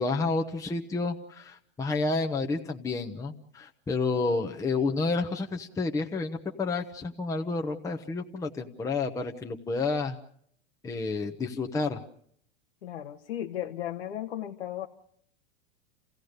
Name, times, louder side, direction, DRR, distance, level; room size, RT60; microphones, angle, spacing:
voice 1, 0.0-10.2 10.8-12.0, left 3 dB, 10° left, 3 dB, 0.9 m, -30 dB
voice 2, 12.8-14.9, left 11 dB, 90° left, 4 dB, 1.4 m, -35 dB
29.0 x 16.0 x 6.6 m, 0.67 s
supercardioid pair, 135°, 32 cm